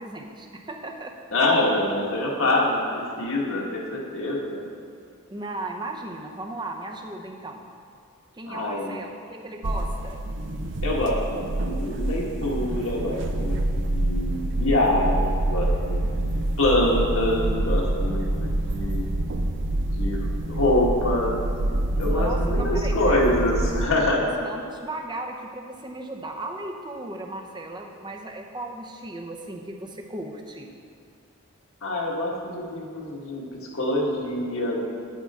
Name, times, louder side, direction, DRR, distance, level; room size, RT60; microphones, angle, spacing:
voice 1, 0.0-1.1 5.3-7.6 8.3-10.2 22.0-23.4 24.0-30.7, right 2 dB, 20° right, 3 dB, 0.7 m, -36 dB
voice 2, 1.3-4.7 8.5-9.0 10.8-19.0 19.7-21.4 21.7-24.2 31.8-34.8, left 1 dB, 70° left, -3 dB, 1.6 m, -25 dB
sound 1, 9.6-23.9, right 1 dB, 55° right, 0.6 m, -26 dB
9.8 x 9.2 x 3.7 m, 2.2 s
head